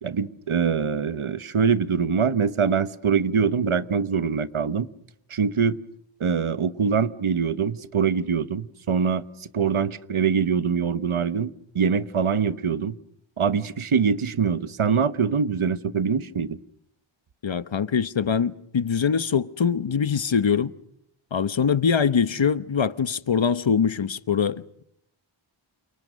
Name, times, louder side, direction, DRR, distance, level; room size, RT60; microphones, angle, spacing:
voice 1, 0.0-4.9 5.3-5.8 6.2-9.2 9.5-12.9 13.4-16.6, right 6 dB, 90° right, 1.1 m, -24 dB
voice 2, 17.4-20.7 21.3-24.8, left 6 dB, 65° left, 1.1 m, -23 dB
29.0 x 28.5 x 6.3 m
wide cardioid pair, 45°, 48 cm